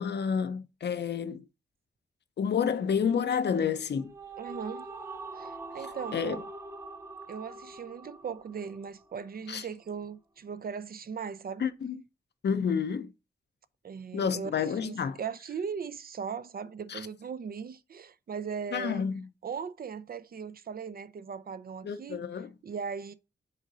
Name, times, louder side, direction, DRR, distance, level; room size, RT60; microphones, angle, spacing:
voice 1, 0.0-1.4 2.4-4.1 6.1-6.4 9.5-9.6 11.6-12.0 12.4-13.1 14.1-15.2 16.9-17.1 18.7-19.3 21.8-22.5, left 7 dB, 75° left, 0.7 m, -29 dB
sound 1, 3.8-9.2, right 3 dB, 15° right, 0.7 m, -44 dB
voice 2, 4.4-4.9 5.4-6.5 7.3-11.7 13.8-14.5 14.8-19.0 19.4-22.2 22.6-23.1, right 6 dB, 60° right, 0.6 m, -38 dB
6.5 x 3.8 x 5.4 m
wide cardioid pair, 135°, 18 cm